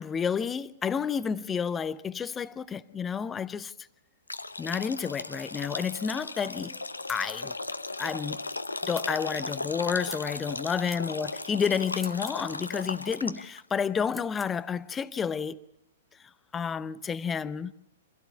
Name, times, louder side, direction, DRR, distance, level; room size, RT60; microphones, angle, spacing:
voice 1, 0.0-3.7 4.6-6.8 7.1-7.5 8.0-8.4 8.8-15.6 16.5-17.7, left 6 dB, 15° left, 0.8 m, -30 dB
sound 1, 4.3-13.6, left 2 dB, 80° left, 0.9 m, -36 dB
sound 2, 7.1-7.3 8.9-9.1 10.1-10.3 10.9-11.0 11.9-12.4 14.1-14.5, equal, ahead, 1.3 m, -45 dB
25.0 x 16.0 x 8.6 m
figure-of-eight pair, 105°, 0 cm